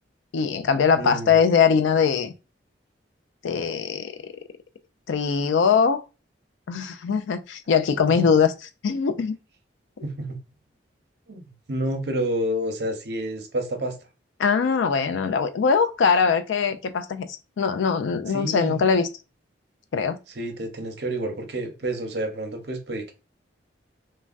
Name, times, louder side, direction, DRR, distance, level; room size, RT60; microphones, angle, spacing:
voice 1, 0.3-2.3 3.4-4.1 5.1-6.0 6.7-9.4 14.4-19.1 19.9-20.2, left 6 dB, 85° left, 0.4 m, -22 dB
voice 2, 1.0-1.4 8.1-8.2 10.0-10.4 11.3-13.9 18.3-18.8 20.3-23.1, right 1 dB, 60° right, 0.7 m, -29 dB
3.3 x 2.1 x 2.4 m
head